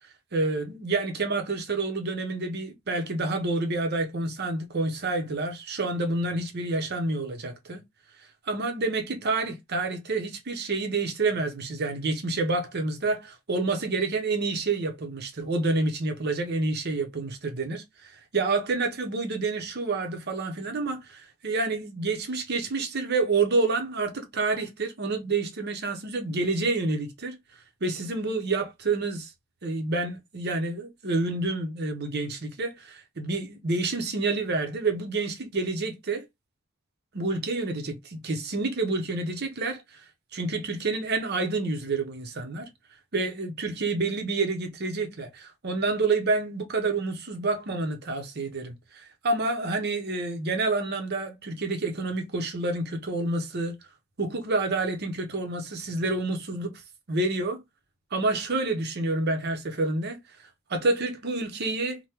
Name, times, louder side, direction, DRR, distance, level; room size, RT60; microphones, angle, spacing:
voice 1, 0.3-7.8 8.5-27.4 27.8-29.3 29.6-36.2 37.1-40.0 40.3-42.7 43.1-53.7 54.2-56.7 57.1-57.6 58.1-60.2 60.7-62.0, right 3 dB, 50° right, 0.7 m, -28 dB
3.4 x 2.1 x 2.8 m
head